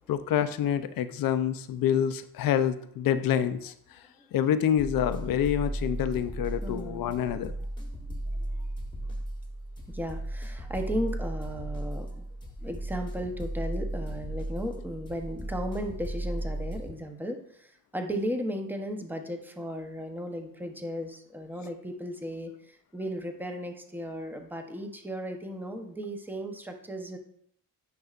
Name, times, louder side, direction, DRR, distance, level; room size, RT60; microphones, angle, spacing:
voice 1, 0.1-7.5, left 9 dB, 65° left, 11 dB, 0.6 m, -27 dB
sound 1, 4.8-16.9, right 1 dB, 10° left, 1.2 m, -35 dB
voice 2, 6.6-7.2 7.8-8.7 9.9-12.3 12.6-27.2, equal, 5° right, 4 dB, 0.8 m, -36 dB
9.4 x 5.5 x 2.5 m, 0.67 s
cardioid pair, 110°, 37 cm